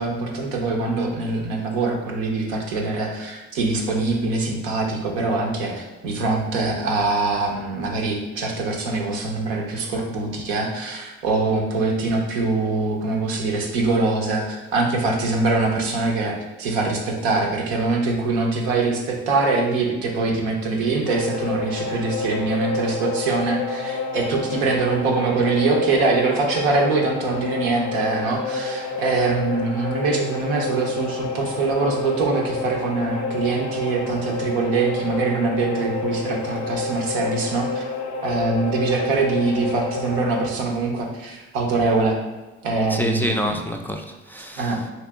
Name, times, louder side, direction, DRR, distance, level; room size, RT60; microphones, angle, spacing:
voice 1, 0.0-37.8 38.2-42.2 42.6-43.6 44.6-44.8, right 3 dB, 90° right, 1 dB, 0.6 m, -23 dB
sound 1, 21.1-40.5, left 4 dB, 70° left, 0.5 m, -29 dB
voice 2, 42.9-44.9, equal, 5° left, 2 dB, 0.3 m, -27 dB
3.0 x 2.8 x 3.4 m, 1.1 s
hypercardioid pair, 55°, 30 cm